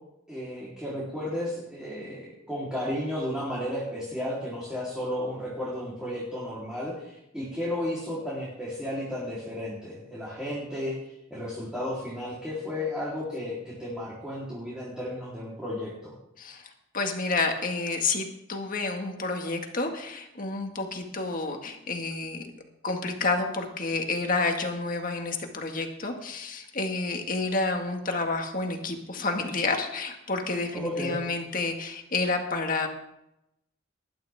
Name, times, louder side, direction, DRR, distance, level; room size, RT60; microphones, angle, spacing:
voice 1, 0.3-11.0 11.3-16.1 30.7-31.2, left 1 dB, 5° right, -8 dB, 3.7 m, -33 dB
voice 2, 16.4-22.5 22.8-32.9, left 3 dB, 45° left, 3 dB, 1.9 m, -29 dB
20.0 x 12.0 x 3.6 m, 0.84 s
head